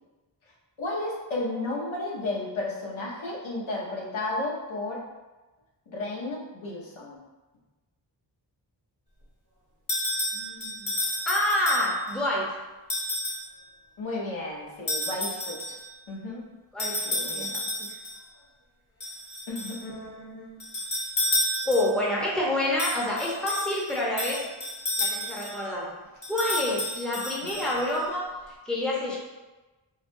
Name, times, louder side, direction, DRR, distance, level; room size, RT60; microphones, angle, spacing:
voice 1, 0.8-5.0 5.9-7.2 14.0-15.8 16.1-16.4 17.0-17.5 19.5-19.8 27.6-27.7, left 2 dB, 80° left, -4 dB, 0.9 m, -33 dB
sound 1, 9.9-12.1 12.9-13.5 14.9-15.9 16.8-18.2 19.0-19.8 20.6-22.0 22.8-25.6 26.2-28.0, left 1 dB, 40° left, 1.1 m, -31 dB
voice 2, 10.3-10.9 11.3-12.5 16.7-17.6 19.8-20.7 21.6-24.4 25.0-25.9 26.3-28.2 28.6-29.2, left 1 dB, ahead, -5 dB, 0.7 m, -28 dB
4.6 x 2.2 x 2.6 m, 1.2 s
wide cardioid pair, 90°, 47 cm